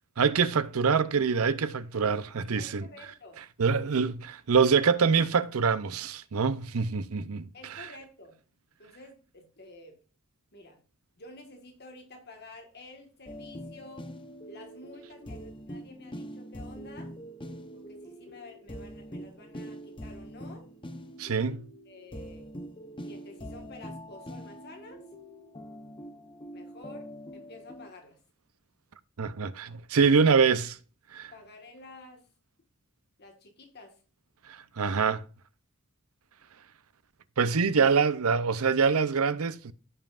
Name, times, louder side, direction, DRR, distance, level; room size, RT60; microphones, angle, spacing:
voice 1, 0.2-2.9 3.6-7.5 7.7-7.9 21.2-21.6 29.2-30.8 31.1-31.3 34.5-35.2 37.4-39.7, right 5 dB, 80° right, 0.6 m, -25 dB
voice 2, 2.6-3.4 7.5-8.3 8.8-10.0 10.5-10.8 11.2-14.1 14.5-17.1 17.7-20.7 21.5-21.6 21.8-22.5 23.0-25.0 26.5-27.0 27.3-28.2 31.3-32.2 33.2-33.9, left 2 dB, 50° left, 1.6 m, -50 dB
sound 1, 13.3-27.9, equal, 25° left, 0.8 m, -44 dB
15.5 x 5.6 x 2.5 m
head